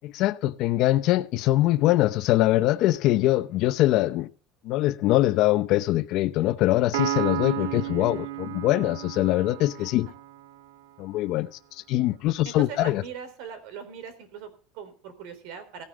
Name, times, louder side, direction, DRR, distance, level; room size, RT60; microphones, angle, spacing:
voice 1, 0.0-4.3 4.6-10.1 11.0-11.5 11.9-13.0, left 16 dB, 50° left, 0.7 m, -23 dB
Piano, 6.9-10.5, right 14 dB, 85° right, 0.9 m, -32 dB
voice 2, 7.6-8.1 9.8-9.9 12.5-15.8, right 7 dB, 65° right, 3.6 m, -40 dB
16.5 x 9.4 x 3.7 m
cardioid pair, 160°, 0 cm